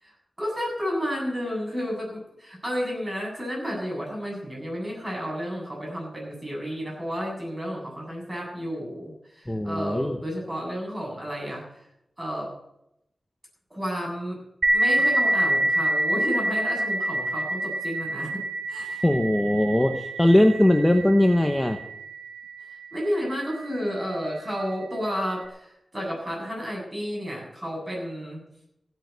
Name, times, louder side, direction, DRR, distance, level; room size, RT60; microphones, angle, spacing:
voice 1, 0.0-11.8 12.2-12.5 13.7-14.4 14.7-18.4 18.7-19.0 22.9-28.4, equal, 20° right, -2 dB, 7.8 m, -31 dB
voice 2, 9.5-10.2 18.8-21.8, left 1 dB, 10° left, 5 dB, 1.0 m, -20 dB
sound 1, 14.6-23.9, right 1 dB, 65° right, 2.5 m, -27 dB
15.5 x 9.1 x 8.1 m, 0.80 s
wide cardioid pair, 120°, 0 cm